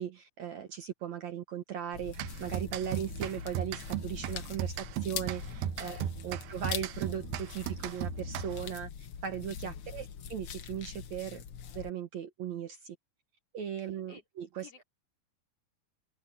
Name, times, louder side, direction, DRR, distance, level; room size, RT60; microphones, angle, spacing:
voice 1, 0.0-2.1 2.4-6.0 6.2-8.9 9.2-11.4 11.7-13.0 13.5-14.8, right 9 dB, 60° right, 2.3 m, -38 dB
sound 1, 1.9-11.9, left 8 dB, 85° left, 1.2 m, -42 dB
sound 2, 2.1-8.8, right 11 dB, 80° right, 2.8 m, -37 dB
voice 2, 5.8-6.4 9.7-10.1 13.8-14.2 14.6-14.8, left 4 dB, 45° left, 4.1 m, -54 dB
open air
omnidirectional pair, 4.2 m